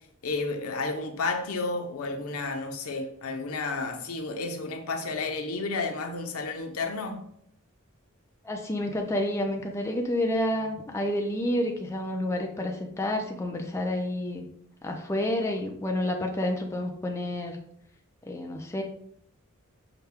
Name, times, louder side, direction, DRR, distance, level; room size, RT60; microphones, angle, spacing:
voice 1, 0.2-7.2, left 3 dB, 75° left, 4 dB, 0.7 m, -31 dB
voice 2, 8.4-14.5 14.8-17.6 18.3-18.8, left 1 dB, 15° left, 1 dB, 0.4 m, -29 dB
5.7 x 2.2 x 3.4 m, 0.69 s
head